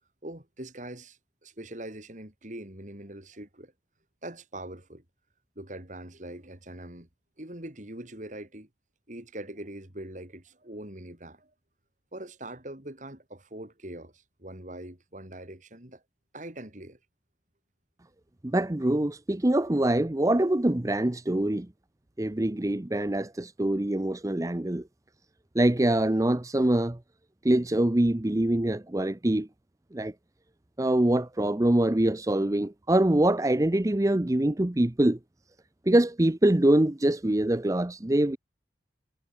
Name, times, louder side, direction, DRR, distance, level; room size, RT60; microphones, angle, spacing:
voice 1, 0.2-3.7 4.2-5.0 5.6-7.1 7.4-8.7 9.1-11.5 12.1-16.0 16.3-17.0, right 1 dB, 45° right, 3.5 m, -42 dB
voice 2, 18.4-21.7 22.2-24.8 25.5-27.0 27.4-29.5 29.9-30.1 30.8-35.2 35.9-38.4, right 1 dB, 20° right, 0.6 m, -24 dB
head